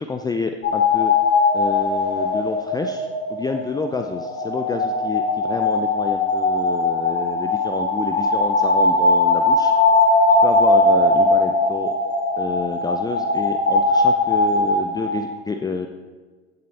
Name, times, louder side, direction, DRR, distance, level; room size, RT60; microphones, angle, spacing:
voice 1, 0.1-1.1 1.5-9.7 10.4-11.9 12.4-15.9, left 4 dB, 10° left, 6 dB, 0.6 m, -29 dB
sound 1, 0.6-15.3, left 2 dB, 30° left, 3.5 m, -19 dB
16.0 x 8.0 x 4.3 m, 1.4 s
hypercardioid pair, 90°, 34 cm